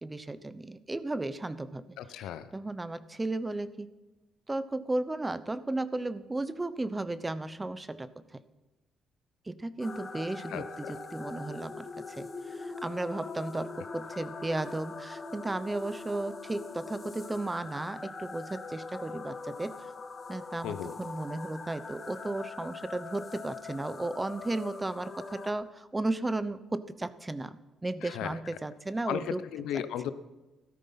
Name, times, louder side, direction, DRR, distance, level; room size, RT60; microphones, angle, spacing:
voice 1, 0.0-2.3 2.5-3.9 4.5-8.4 9.5-19.8 20.3-29.4 29.7-29.8, right 2 dB, 15° right, 15 dB, 0.8 m, -35 dB
voice 2, 2.0-2.5 10.5-11.0 20.6-20.9 28.0-28.3 29.1-30.1, left 10 dB, 85° left, 13 dB, 0.8 m, -35 dB
sound 1, 9.8-25.5, left 4 dB, 35° left, 1.6 m, -42 dB
14.0 x 13.0 x 5.7 m, 1.1 s
cardioid pair, 95°, 0 cm